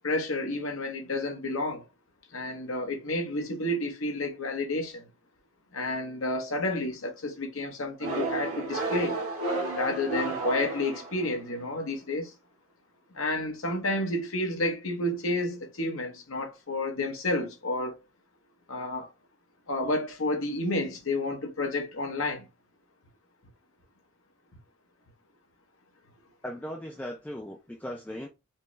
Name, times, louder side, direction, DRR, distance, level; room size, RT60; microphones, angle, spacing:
voice 1, 0.0-1.8 2.3-5.0 5.7-9.2 9.7-12.3 13.1-17.9 18.7-19.1 19.7-22.5, left 2 dB, 65° left, 1.0 m, -30 dB
sound 1, 8.0-11.5, right 3 dB, 75° right, 1.5 m, -32 dB
voice 2, 26.4-28.3, equal, 5° left, 0.3 m, -38 dB
4.5 x 2.3 x 3.1 m
head